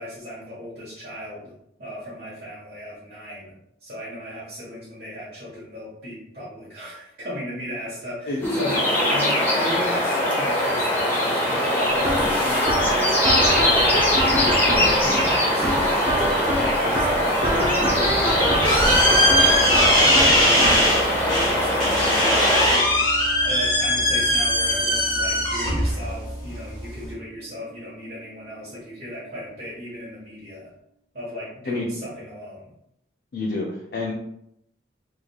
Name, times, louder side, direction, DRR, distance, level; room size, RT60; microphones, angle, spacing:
voice 1, 0.0-1.5 1.8-3.5 3.8-30.7 31.1-32.7, left 1 dB, 60° right, -9 dB, 1.3 m, -36 dB
sound 1, 8.4-22.8, left 1 dB, 10° left, 0.8 m, -21 dB
sound 2, 11.9-29.1, right 1 dB, 30° right, 0.4 m, -29 dB
sound 3, 18.0-27.1, equal, 30° left, 1.3 m, -21 dB
voice 2, 33.3-34.1, left 2 dB, 55° left, -3 dB, 0.5 m, -28 dB
3.6 x 3.2 x 2.2 m, 0.77 s
head